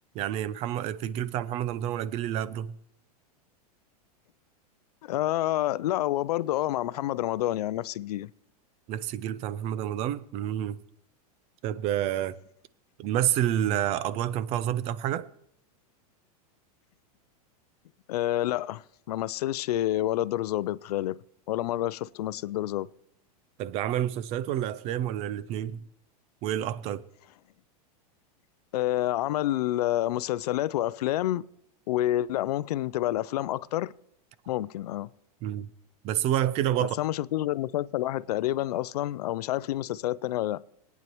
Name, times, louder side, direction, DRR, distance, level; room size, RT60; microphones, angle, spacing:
voice 1, 0.1-2.8 8.9-10.8 11.6-12.4 13.0-15.3 23.6-25.8 26.4-27.1 35.4-35.7 36.0-37.0, right 11 dB, 30° right, 0.4 m, -29 dB
voice 2, 5.0-8.3 18.1-21.2 21.5-22.9 28.7-31.5 31.9-33.9 34.5-35.1 36.8-40.6, left 14 dB, 85° left, 0.4 m, -28 dB
20.5 x 9.2 x 3.0 m
supercardioid pair, 150°, 20 cm